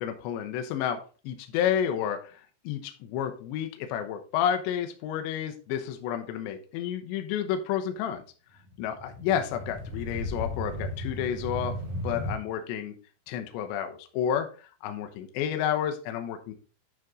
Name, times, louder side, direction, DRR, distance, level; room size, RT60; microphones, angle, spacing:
voice 1, 0.0-8.2 8.8-11.7 12.0-13.0 13.3-16.5, left 9 dB, 75° left, 6 dB, 2.9 m, -30 dB
sound 1, 8.7-12.4, left 1 dB, 50° right, 2.8 m, -35 dB
9.6 x 5.3 x 3.7 m, 0.36 s
omnidirectional pair, 5.9 m